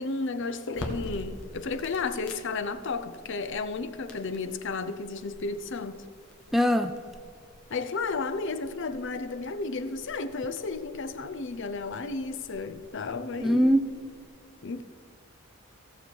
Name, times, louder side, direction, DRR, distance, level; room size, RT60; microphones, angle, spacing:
voice 1, 0.0-6.0 7.7-13.7 14.6-14.8, left 4 dB, 55° left, 0.6 m, -33 dB
sound 1, 0.7-14.2, left 1 dB, 80° left, 1.5 m, -47 dB
voice 2, 6.5-6.9 13.4-13.9, equal, ahead, 0.3 m, -22 dB
16.0 x 7.1 x 4.6 m
head